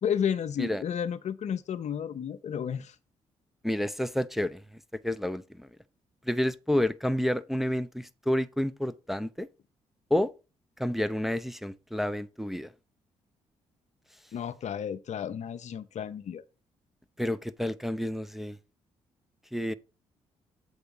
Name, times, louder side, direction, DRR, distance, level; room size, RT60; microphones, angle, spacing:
voice 1, 0.0-2.9 14.3-16.4, left 8 dB, 60° left, 0.6 m, -32 dB
voice 2, 3.6-4.6 5.0-5.7 6.3-9.5 10.1-10.3 10.8-12.7 17.2-18.6 19.5-19.7, left 1 dB, ahead, 0.6 m, -29 dB
7.9 x 3.5 x 5.5 m
hypercardioid pair, 45°, 14 cm